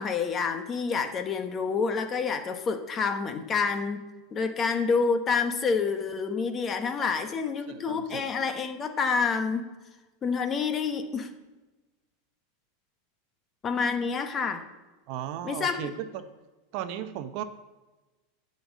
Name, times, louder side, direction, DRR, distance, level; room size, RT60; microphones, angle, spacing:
voice 1, 0.0-4.0 4.3-9.7 10.2-11.3 13.6-14.6 15.4-15.9, left 5 dB, 20° left, 8 dB, 1.0 m, -28 dB
voice 2, 7.7-8.3 15.1-16.2 16.7-17.4, right 11 dB, 45° right, 10 dB, 0.7 m, -36 dB
11.0 x 5.4 x 8.3 m, 1.2 s
supercardioid pair, 165°, 0 cm